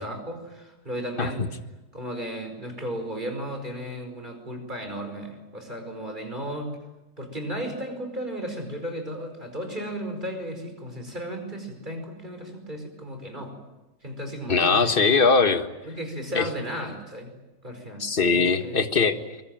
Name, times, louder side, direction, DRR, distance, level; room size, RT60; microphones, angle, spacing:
voice 1, 0.0-1.5 1.9-6.7 7.2-13.6 14.0-15.0 15.8-17.3 17.6-18.0 18.3-18.8, equal, 25° right, 4 dB, 5.2 m, -34 dB
voice 2, 14.5-15.7 16.3-16.5 18.0-19.2, left 4 dB, 35° left, 8 dB, 1.6 m, -21 dB
23.5 x 22.5 x 9.1 m, 1.0 s
omnidirectional pair, 1.8 m